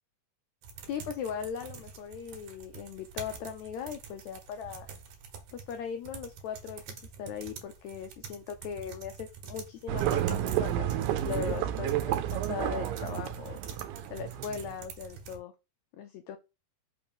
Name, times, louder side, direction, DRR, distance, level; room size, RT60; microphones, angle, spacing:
sound 1, 0.6-15.4, right 6 dB, 70° right, 2.5 m, -47 dB
voice 1, 0.9-4.9 5.5-13.6 14.1-15.5 16.0-16.4, left 7 dB, 80° left, 7 dB, 1.6 m, -39 dB
sound 2, 9.9-14.8, right 11 dB, 85° right, 2.3 m, -31 dB
5.6 x 3.1 x 5.3 m, 0.27 s
omnidirectional pair, 3.9 m